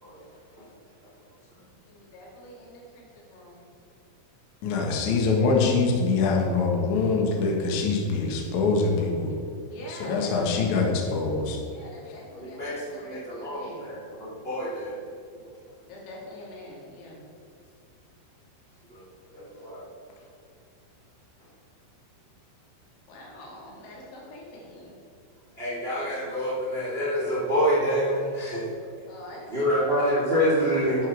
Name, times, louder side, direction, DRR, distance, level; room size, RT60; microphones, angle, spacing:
voice 1, 1.9-3.6 9.7-10.6 11.1-11.2 11.7-13.8 15.9-17.3 23.1-25.0 29.1-30.1, left 1 dB, 90° left, -3 dB, 5.2 m, -45 dB
voice 2, 4.6-9.3 9.9-11.6, left 4 dB, 70° left, 0 dB, 1.8 m, -24 dB
voice 3, 12.3-14.9 18.9-19.0 19.3-19.8 25.6-28.7 29.5-31.1, equal, 40° right, -6 dB, 0.8 m, -27 dB
10.5 x 10.5 x 4.8 m, 2.5 s
omnidirectional pair, 5.8 m